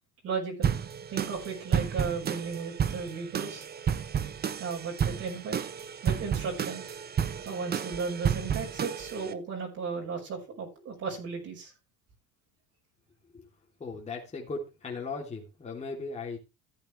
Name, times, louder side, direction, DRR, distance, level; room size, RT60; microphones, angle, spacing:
voice 1, 0.2-0.8 1.1-3.6 4.6-5.6 6.0-6.9 7.5-11.7, right 5 dB, 50° right, 0 dB, 5.9 m, -35 dB
sound 1, 0.6-9.3, right 8 dB, 30° right, 0.9 m, -31 dB
voice 2, 13.8-16.4, left 3 dB, 20° left, -2 dB, 3.2 m, -37 dB
14.5 x 8.6 x 3.3 m, 0.28 s
supercardioid pair, 105°, 31 cm